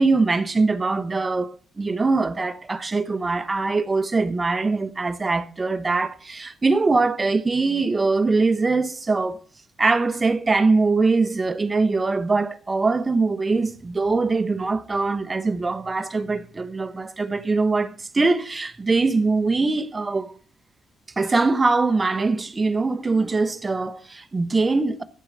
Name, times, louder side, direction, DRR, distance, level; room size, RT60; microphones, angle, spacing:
voice 1, 0.0-9.4 9.8-20.4 21.2-25.0, right 3 dB, 25° right, 1.1 m, -22 dB
14.5 x 4.8 x 7.4 m
cardioid pair, 90°, 0 cm